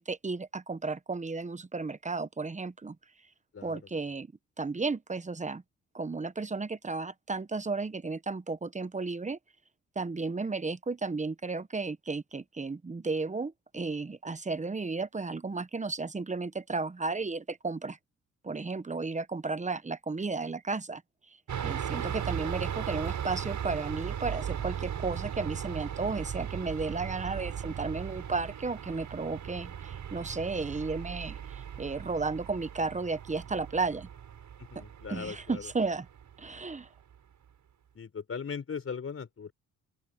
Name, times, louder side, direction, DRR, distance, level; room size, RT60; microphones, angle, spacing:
voice 1, 0.0-3.0 3.6-4.3 4.6-5.6 5.9-9.4 9.9-18.0 18.4-21.0 21.3-21.4 21.6-34.1 34.7-34.8 35.1-36.1 36.4-36.9, right 3 dB, 20° right, 1.1 m, -34 dB
voice 2, 3.5-3.9 34.6-35.7 37.9-39.5, left 6 dB, 45° left, 4.7 m, -39 dB
sound 1, 21.5-36.7 37.1-37.2, right 9 dB, 65° right, 7.9 m, -37 dB
open air
cardioid pair, 75°, 32 cm